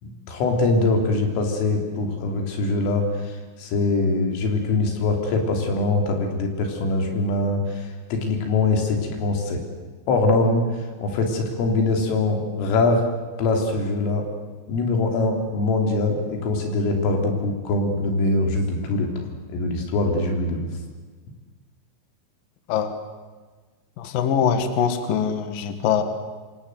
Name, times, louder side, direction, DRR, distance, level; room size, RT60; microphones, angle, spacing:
voice 1, 0.0-9.6 10.1-10.6 11.0-13.0 13.4-14.3 14.7-20.6, left 2 dB, 85° left, 3 dB, 6.1 m, -23 dB
voice 2, 24.0-26.0, left 7 dB, 55° left, 8 dB, 3.0 m, -23 dB
26.0 x 25.5 x 8.0 m, 1.4 s
omnidirectional pair, 5.7 m